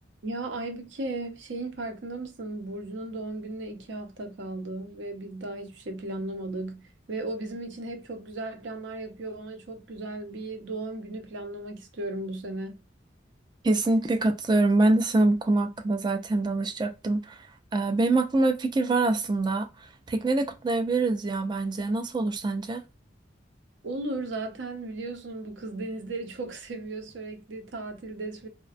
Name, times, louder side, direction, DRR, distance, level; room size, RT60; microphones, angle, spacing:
voice 1, 0.2-12.8 23.8-28.5, right 2 dB, 70° right, 0.6 m, -36 dB
voice 2, 13.6-19.7 20.1-22.8, right 2 dB, 25° right, 0.3 m, -25 dB
2.5 x 2.1 x 2.4 m
head